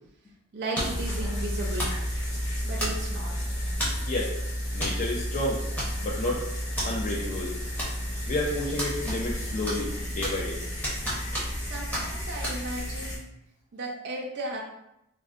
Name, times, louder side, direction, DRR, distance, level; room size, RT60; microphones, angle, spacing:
voice 1, 0.5-1.9 2.6-3.3 11.7-13.2 13.7-14.6, right 2 dB, 50° right, -2 dB, 0.4 m, -35 dB
sound 1, 0.7-1.1 1.8-2.0 2.8-3.2 3.8-4.1 4.8-5.0 5.3-5.4 5.8-6.2 6.8-6.9 7.8-8.2 8.8-9.4 9.6-10.5 10.8-11.6 11.9-12.1 12.4-12.6, equal, 5° left, 0.7 m, -32 dB
sound 2, 0.8-13.2, equal, 80° left, 1.3 m, -32 dB
voice 2, 4.7-5.6 6.0-6.4 6.8-7.5 8.3-10.6, left 1 dB, 35° left, -3 dB, 0.3 m, -30 dB
3.6 x 2.0 x 2.4 m, 0.84 s
head